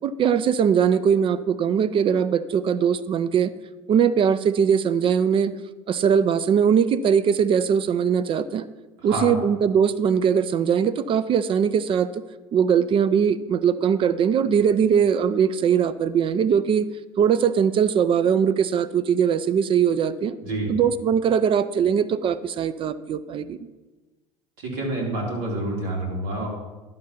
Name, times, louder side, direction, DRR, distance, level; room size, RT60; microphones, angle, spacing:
voice 1, 0.0-3.5 3.9-5.5 5.9-8.7 9.0-12.2 12.5-16.9 17.2-20.4 20.7-23.6, right 7 dB, 35° right, 14 dB, 0.4 m, -21 dB
voice 2, 9.0-9.4 20.4-20.7 24.6-26.5, right 1 dB, 65° right, -1 dB, 2.8 m, -28 dB
11.5 x 3.9 x 5.7 m, 1.2 s
hypercardioid pair, 75°, 16 cm